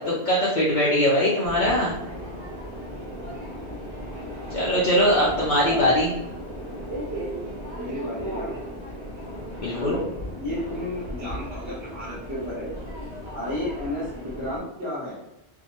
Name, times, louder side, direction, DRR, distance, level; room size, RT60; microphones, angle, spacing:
voice 1, 0.3-1.9 4.5-6.1 9.6-10.0, equal, 50° left, -6 dB, 0.7 m, -21 dB
Subway metro underground, 1.4-14.6, equal, 80° right, 1.1 m, -36 dB
voice 2, 5.6-5.9 7.7-8.5 9.7-10.1 10.3-12.7 13.3-15.2, left 1 dB, 20° right, -12 dB, 1.2 m, -32 dB
2.7 x 2.2 x 2.9 m, 0.85 s
omnidirectional pair, 1.1 m